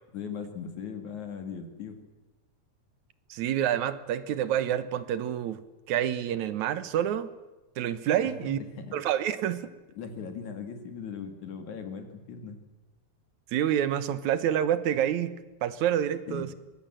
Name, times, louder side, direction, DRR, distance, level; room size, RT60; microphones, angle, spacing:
voice 1, 0.1-2.0 8.2-8.3 8.8-8.9 10.0-12.6 16.3-16.5, left 6 dB, 80° left, 7 dB, 3.8 m, -38 dB
voice 2, 3.3-5.6 5.9-7.3 7.8-8.6 8.9-9.7 13.5-15.3 15.6-16.5, right 10 dB, 80° right, 14 dB, 2.5 m, -28 dB
23.5 x 20.5 x 7.6 m, 1.1 s
omnidirectional pair, 3.3 m